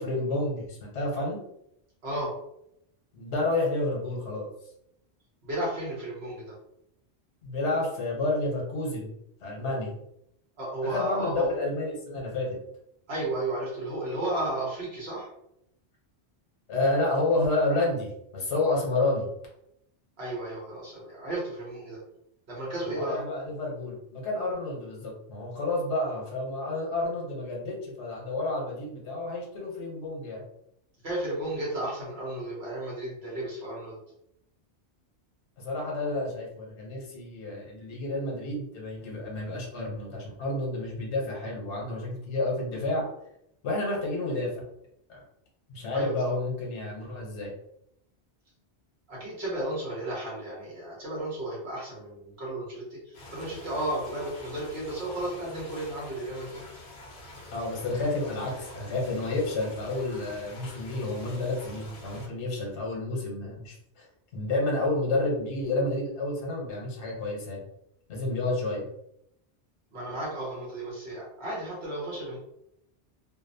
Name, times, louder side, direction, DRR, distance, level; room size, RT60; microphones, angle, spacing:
voice 1, 0.0-1.4 3.1-4.5 7.4-9.1 9.4-9.9 10.8-12.6 16.7-19.3 22.8-30.4 35.6-43.1 43.6-44.5 45.1-45.2 45.7-47.5 57.5-64.1 64.3-67.6 68.1-68.8, left 2 dB, 80° left, -3 dB, 1.1 m, -30 dB
voice 2, 2.0-2.3 5.4-6.5 10.6-11.5 13.1-15.3 20.2-22.0 22.5-23.2 31.0-34.0 45.9-46.2 49.1-56.6 69.9-72.4, right 1 dB, 65° right, -6 dB, 1.1 m, -33 dB
sound 1, 53.1-62.3, left 1 dB, 55° left, 0.7 m, -46 dB
2.6 x 2.0 x 2.6 m, 0.78 s
omnidirectional pair, 1.2 m